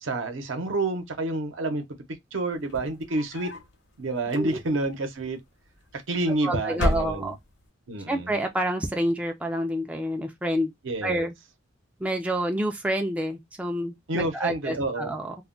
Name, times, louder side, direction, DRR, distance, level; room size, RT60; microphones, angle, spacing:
voice 1, 0.0-1.8 2.3-3.5 4.0-5.4 6.1-7.3 7.9-8.3 10.8-11.3 14.1-15.1, right 2 dB, 75° right, 0.7 m, -28 dB
sound 1, 2.6-3.7 4.2-4.9 5.9-6.4 6.7-7.6, left 1 dB, 60° left, 0.8 m, -31 dB
voice 2, 6.3-7.3 8.1-10.7 11.0-11.3 12.0-15.3, right 1 dB, 5° right, 0.3 m, -28 dB
2.2 x 2.1 x 3.6 m
head